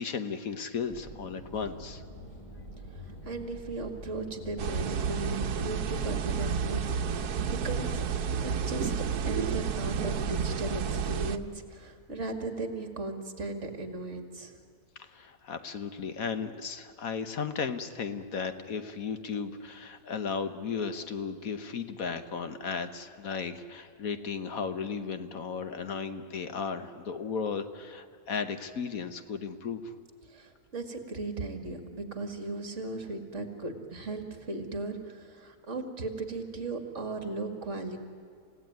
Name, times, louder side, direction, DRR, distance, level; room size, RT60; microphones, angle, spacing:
voice 1, 0.0-2.0 15.0-29.9, left 5 dB, 65° left, 9 dB, 1.5 m, -35 dB
sound 1, 0.9-11.2, equal, 20° left, 4.6 m, -47 dB
voice 2, 3.3-8.0 8.4-8.9 9.2-14.5 30.3-38.0, right 3 dB, 50° right, 6 dB, 2.4 m, -37 dB
sound 2, 4.6-11.4, right 6 dB, 75° right, 1.4 m, -31 dB
28.5 x 16.5 x 9.3 m, 2.4 s
omnidirectional pair, 1.6 m